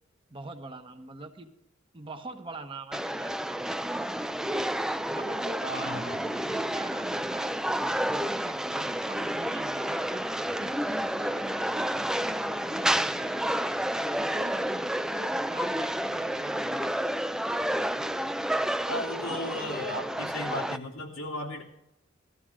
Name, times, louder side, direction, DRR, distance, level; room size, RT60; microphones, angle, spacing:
voice 1, 0.3-1.5 1.9-3.7 5.1-10.3 10.6-13.7 14.2-16.9, right 2 dB, 25° right, 6 dB, 1.1 m, -44 dB
sound 1, 2.9-20.8, right 1 dB, 5° right, 0.4 m, -30 dB
voice 2, 5.6-6.2 18.9-21.6, left 1 dB, 80° left, 0 dB, 3.1 m, -35 dB
19.0 x 14.0 x 3.7 m, 0.82 s
head